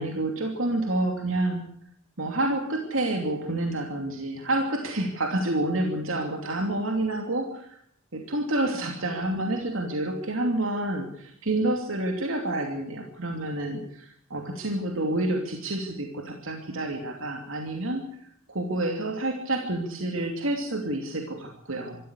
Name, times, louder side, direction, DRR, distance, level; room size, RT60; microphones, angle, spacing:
voice 1, 0.0-1.6 2.2-7.8 8.1-18.0 18.5-22.0, right 1 dB, 70° right, 2 dB, 2.8 m, -28 dB
25.0 x 14.0 x 8.2 m, 0.68 s
head